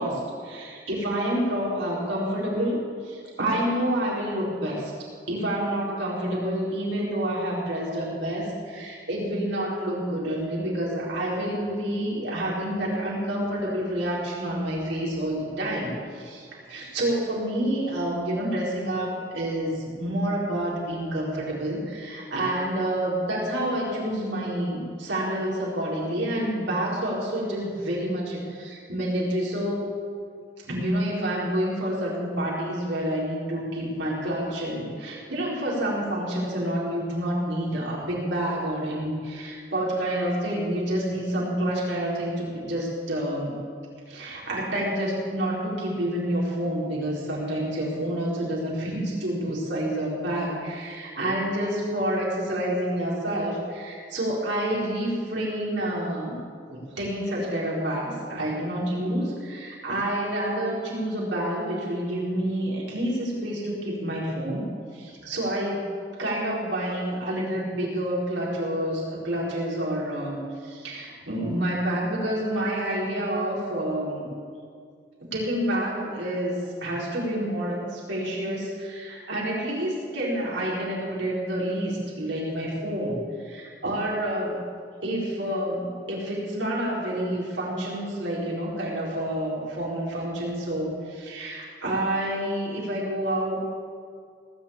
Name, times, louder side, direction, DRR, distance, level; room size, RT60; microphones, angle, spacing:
voice 1, 0.0-4.9 5.3-29.9 30.6-43.5 44.1-56.4 56.7-64.6 64.9-65.9 66.2-74.3 75.2-84.6 85.0-93.6, right 1 dB, 85° right, -5 dB, 4.3 m, -28 dB
18.5 x 7.3 x 8.8 m, 2.1 s
head